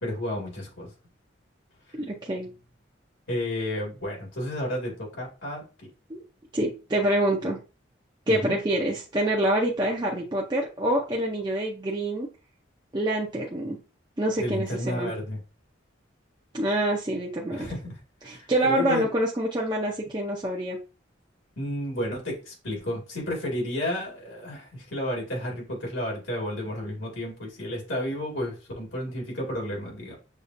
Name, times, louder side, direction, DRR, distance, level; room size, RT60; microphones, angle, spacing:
voice 1, 0.0-0.9 3.3-5.9 8.3-8.5 14.4-15.4 17.5-17.9 18.2-19.1 21.6-30.1, left 1 dB, 75° left, -2 dB, 2.0 m, -32 dB
voice 2, 1.9-2.5 6.1-6.2 6.5-7.6 8.3-12.3 12.9-13.8 14.2-15.1 16.5-17.7 18.2-20.8, right 1 dB, 20° right, -2 dB, 0.5 m, -26 dB
6.4 x 2.3 x 2.6 m, 0.32 s
head